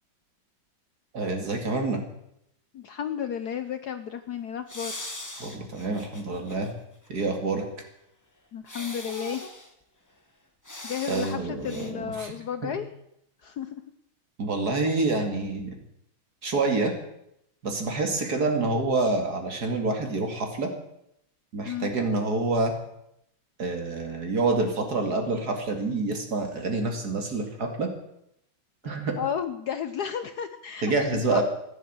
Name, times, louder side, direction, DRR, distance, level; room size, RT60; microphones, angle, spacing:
voice 1, 1.1-2.0 5.4-6.7 7.1-7.6 11.1-12.7 14.4-15.8 16.4-16.9 17.6-20.7 21.5-22.7 23.6-27.9 28.8-29.2 30.8-31.4, right 3 dB, 50° right, 4 dB, 2.7 m, -27 dB
voice 2, 2.7-5.0 8.5-9.5 10.8-12.9 13.4-13.8 21.6-21.9 29.2-31.4, left 8 dB, 65° left, 10 dB, 1.1 m, -33 dB
sound 1, 4.7-6.7 7.1-7.2 8.7-9.7 10.7-11.4 11.6-11.9, left 1 dB, 10° left, 1.4 m, -40 dB
14.5 x 10.5 x 8.1 m, 0.78 s
omnidirectional pair, 2.3 m